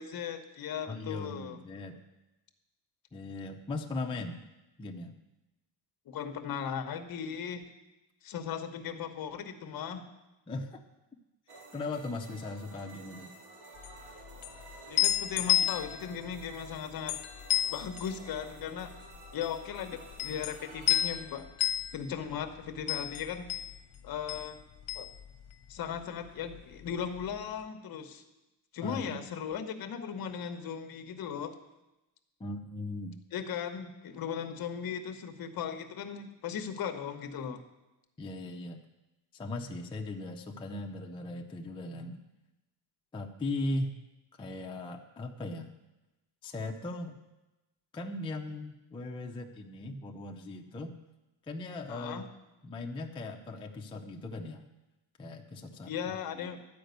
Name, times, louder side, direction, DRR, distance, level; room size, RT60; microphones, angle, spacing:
voice 1, 0.0-1.6 6.1-7.6 8.2-10.0 14.9-17.2 17.6-18.9 19.3-21.5 21.9-23.5 24.0-24.6 24.9-25.1 25.7-28.2 28.7-31.5 33.3-37.6 51.9-52.2 55.9-56.6, left 7 dB, 50° left, 8 dB, 0.9 m, -37 dB
voice 2, 0.9-2.0 3.1-4.4 4.8-5.1 10.5-10.8 11.7-13.3 28.8-29.3 32.4-33.1 38.2-38.8 39.3-42.2 43.1-43.9 44.4-45.7 46.4-47.2 47.9-50.9 51.5-52.2 52.6-54.7 55.2-55.9 56.3-56.6, left 2 dB, 10° left, 2 dB, 0.4 m, -38 dB
sound 1, 11.5-21.2, right 2 dB, 80° right, 2.5 m, -52 dB
sound 2, 13.8-26.0 26.3-27.4, left 13 dB, 75° left, 0.8 m, -33 dB
11.5 x 5.1 x 8.0 m, 1.0 s
cardioid pair, 165°, 47 cm